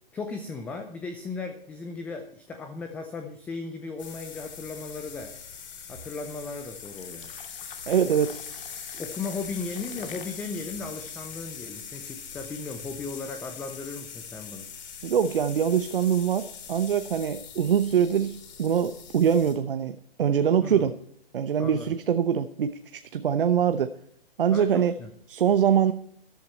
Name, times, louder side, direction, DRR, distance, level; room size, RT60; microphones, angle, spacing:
voice 1, 0.1-5.4 5.9-7.3 8.9-14.7 20.6-20.9 21.6-21.9 24.5-25.1, left 4 dB, 5° left, 7 dB, 0.5 m, -36 dB
sound 1, 4.0-19.5, left 7 dB, 45° left, 6.6 m, -42 dB
sound 2, 6.8-12.1, left 6 dB, 60° left, 2.4 m, -49 dB
voice 2, 7.9-8.4 15.0-21.0 21.3-23.9 24.4-24.9 25.3-25.9, right 8 dB, 65° right, 10 dB, 0.9 m, -24 dB
14.0 x 11.5 x 4.2 m, 0.66 s
hypercardioid pair, 135°, 30 cm